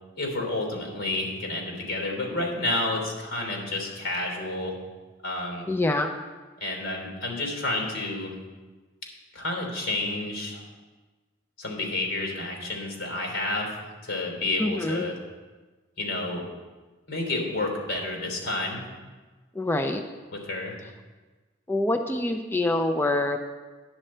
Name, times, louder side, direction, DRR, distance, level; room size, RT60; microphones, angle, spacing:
voice 1, 0.2-4.7 5.2-5.7 6.6-8.3 9.3-10.6 11.6-13.7 14.0-15.1 16.0-16.5 17.1-18.8 20.3-20.7, left 2 dB, 90° left, 0 dB, 3.2 m, -30 dB
voice 2, 5.7-6.1 14.6-15.0 19.5-20.0 21.7-23.4, left 2 dB, 10° left, 5 dB, 0.4 m, -25 dB
10.0 x 7.8 x 4.3 m, 1.3 s
head